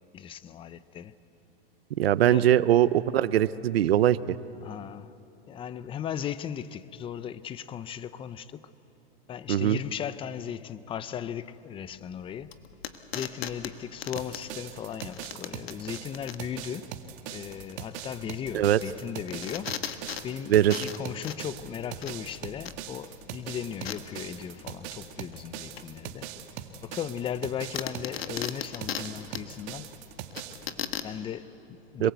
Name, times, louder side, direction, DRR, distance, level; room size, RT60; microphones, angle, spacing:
voice 1, 0.1-1.1 2.2-2.5 4.6-5.1 5.5-8.7 9.3-12.5 13.1-16.9 17.3-19.8 20.2-26.3 26.8-29.9 30.6-32.1, left 9 dB, 20° left, 0.6 m, -37 dB
voice 2, 2.0-4.4 9.5-9.8 18.5-18.8 20.5-20.9 32.0-32.1, right 11 dB, 80° right, 0.8 m, -22 dB
sound 1, 11.8-31.2, left 9 dB, 80° left, 1.6 m, -40 dB
sound 2, 14.2-30.7, right 10 dB, 45° right, 1.8 m, -41 dB
26.5 x 22.0 x 8.2 m
hypercardioid pair, 130°, 30 cm